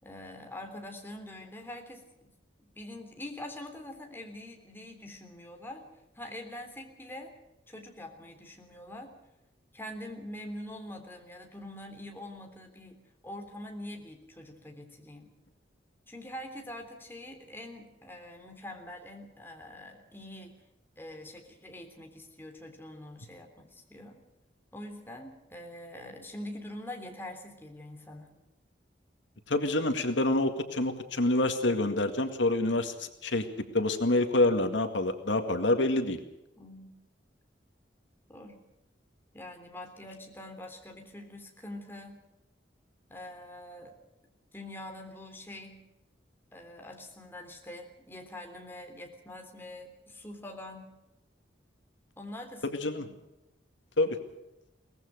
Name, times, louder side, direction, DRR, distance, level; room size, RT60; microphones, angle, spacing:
voice 1, 0.0-2.0 2.8-5.8 6.2-7.3 7.7-9.1 9.7-15.3 16.1-20.6 21.0-24.2 24.7-28.3 36.6-37.0 38.3-38.6 39.3-42.2 43.1-44.0 44.5-45.9 46.5-51.0 52.2-53.1, left 1 dB, 10° left, 3 dB, 3.4 m, -44 dB
voice 2, 29.5-33.5 33.7-36.2 52.6-53.1 54.0-54.2, left 2 dB, 80° left, 7 dB, 2.1 m, -27 dB
23.0 x 19.0 x 6.5 m, 0.93 s
head